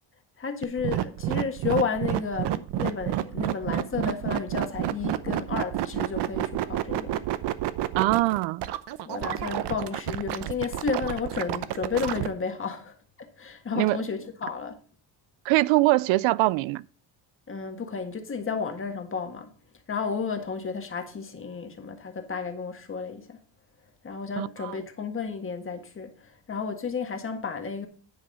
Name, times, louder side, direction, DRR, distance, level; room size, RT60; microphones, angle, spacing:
voice 1, 0.4-7.2 9.1-14.8 17.5-19.5 19.9-23.4 24.0-27.9, left 5 dB, 30° left, 1.7 m, -32 dB
sound 1, 0.6-12.3, right 13 dB, 65° right, 0.8 m, -29 dB
voice 2, 8.0-8.6 13.7-14.0 15.5-16.8 24.4-24.8, right 19 dB, 90° right, 0.5 m, -23 dB
10.0 x 5.5 x 5.4 m
cardioid pair, 135°, 44 cm